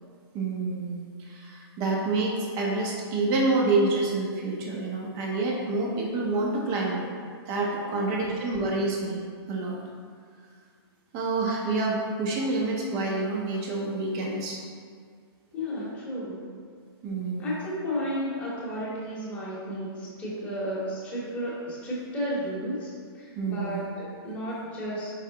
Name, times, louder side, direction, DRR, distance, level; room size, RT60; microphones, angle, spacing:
voice 1, 0.3-7.0 7.5-9.2 9.5-9.8 11.1-14.6 17.0-17.5 23.3-23.8, right 2 dB, 30° right, -2 dB, 0.7 m, -28 dB
voice 2, 7.9-8.3 15.5-16.4 17.4-25.1, equal, 10° left, -8 dB, 1.1 m, -33 dB
4.8 x 3.2 x 2.8 m, 2.1 s
hypercardioid pair, 150°, 13 cm